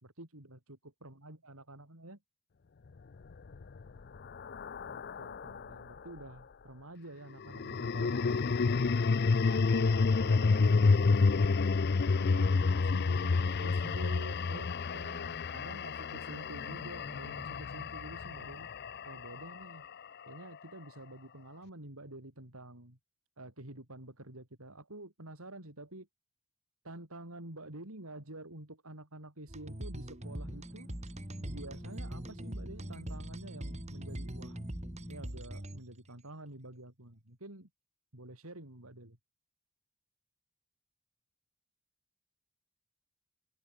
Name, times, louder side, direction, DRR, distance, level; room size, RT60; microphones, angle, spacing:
voice 1, 0.0-2.2 4.9-8.6 9.3-11.3 12.2-18.7 19.0-19.9 20.3-23.0 23.4-26.1 26.8-30.9 31.4-34.6 35.1-37.7 38.1-39.2, right 1 dB, 80° right, 4.8 m, -48 dB
sound 1, 3.3-5.8 7.4-19.7, left 4 dB, 50° left, 0.5 m, -29 dB
sound 2, 29.5-36.1, right 1 dB, 30° right, 2.4 m, -42 dB
sound 3, 30.2-35.2, equal, 10° left, 4.6 m, -49 dB
open air
head